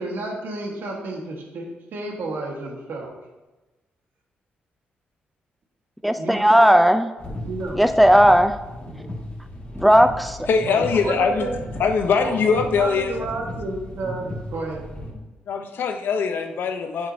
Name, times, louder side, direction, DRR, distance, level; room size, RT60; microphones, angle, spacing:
voice 1, 0.0-3.1 6.1-6.8 7.4-7.8 10.6-11.6 12.2-14.8, right 3 dB, 75° right, 0 dB, 1.6 m, -31 dB
voice 2, 6.0-7.1 7.7-8.5 9.8-10.5, equal, ahead, 9 dB, 0.4 m, -16 dB
sound 1, 7.2-15.1, left 1 dB, 35° left, 2.1 m, -35 dB
voice 3, 10.5-11.5 11.8-13.3 15.5-17.1, left 5 dB, 75° left, 6 dB, 0.8 m, -22 dB
7.5 x 7.4 x 2.8 m, 1.1 s
cardioid pair, 75°, 4 cm